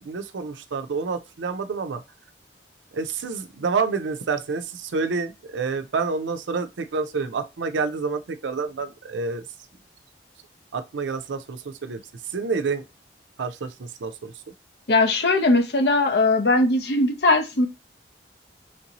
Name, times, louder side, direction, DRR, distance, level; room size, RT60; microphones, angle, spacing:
voice 1, 0.0-2.0 2.9-9.4 10.7-12.0 12.3-12.8 13.4-14.3, right 4 dB, 85° right, 0.4 m, -28 dB
voice 2, 14.9-17.7, left 2 dB, 60° left, 0.6 m, -19 dB
3.2 x 2.6 x 2.9 m
head